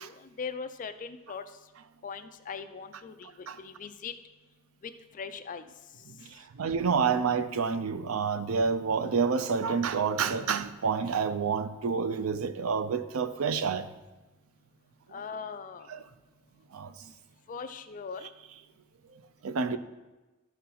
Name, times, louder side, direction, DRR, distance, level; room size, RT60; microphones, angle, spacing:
voice 1, 0.0-1.4 2.0-4.1 5.1-5.6 15.1-15.9 17.5-18.3, left 5 dB, 40° left, 0.4 m, -40 dB
voice 2, 6.5-13.9 15.9-16.0 16.7-17.1 18.2-18.3 19.4-19.8, right 5 dB, 80° right, 0.5 m, -28 dB
12.0 x 4.3 x 3.9 m
head